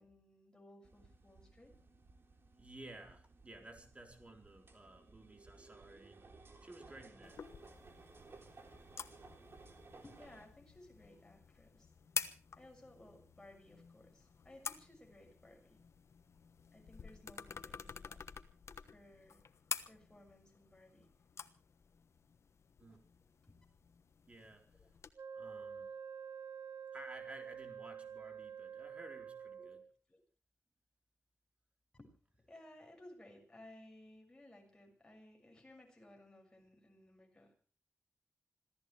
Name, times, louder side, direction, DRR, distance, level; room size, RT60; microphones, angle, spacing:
voice 1, 0.0-1.8 7.7-7.8 10.0-11.9 12.5-15.8 16.7-18.2 18.8-19.4 19.9-21.1 22.9-23.0 23.4-23.6 24.8-24.9 29.6-29.7 30.1-30.2 31.9-32.1 32.5-37.5, left 1 dB, 15° left, 1 dB, 6.5 m, -59 dB
sound 1, 0.8-10.5, right 3 dB, 50° right, 3.6 m, -59 dB
voice 2, 2.6-6.2 6.6-7.4 22.8-23.0 24.3-24.6 25.3-26.0 26.9-29.8, right 2 dB, 25° right, 3 dB, 4.2 m, -54 dB
sound 2, 7.2-25.1, left 6 dB, 70° left, 1.2 m, -49 dB
Wind instrument woodwind instrument, 25.2-29.9, right 7 dB, 75° right, 2.1 m, -48 dB
26.0 x 16.0 x 3.4 m, 0.38 s
wide cardioid pair, 125°, 5 cm